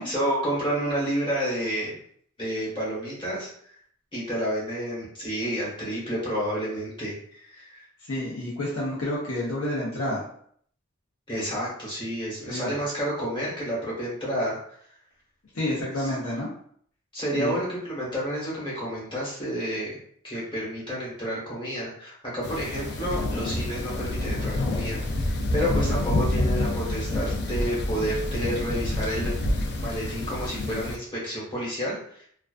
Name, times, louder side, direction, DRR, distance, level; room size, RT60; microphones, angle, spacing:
voice 1, 0.0-2.0 2.4-3.8 4.1-7.8 11.3-14.6 16.0-16.1 17.1-20.0 20.2-29.3 29.8-32.3, equal, 25° left, -7 dB, 1.1 m, -30 dB
voice 2, 8.1-10.3 12.5-12.8 15.5-16.5 17.3-17.6, left 1 dB, 70° left, -6 dB, 0.7 m, -29 dB
sound 1, 22.4-31.0, left 1 dB, 50° left, 0.3 m, -28 dB
2.3 x 2.3 x 2.3 m, 0.62 s
head